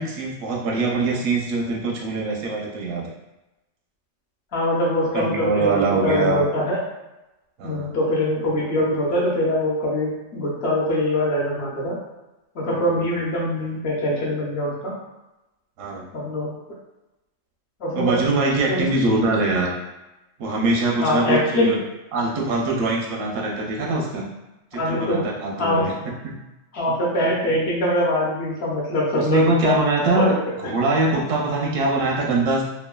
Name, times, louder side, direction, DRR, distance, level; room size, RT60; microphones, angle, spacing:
voice 1, 0.0-3.1 5.1-6.4 7.6-7.9 12.7-13.0 15.8-16.1 17.9-19.7 20.4-21.8 22.1-24.2 24.7-25.9 26.2-26.3 29.1-30.4 30.6-32.6, right 2 dB, 85° right, -1 dB, 1.0 m, -23 dB
voice 2, 4.5-6.8 7.6-11.9 12.5-14.9 16.1-16.5 17.8-18.2 18.7-18.8 21.0-21.8 24.7-25.2 25.6-25.9 26.7-29.8 30.2-30.3, left 1 dB, 60° left, -5 dB, 0.9 m, -23 dB
3.0 x 2.2 x 2.2 m, 0.99 s
omnidirectional pair, 1.3 m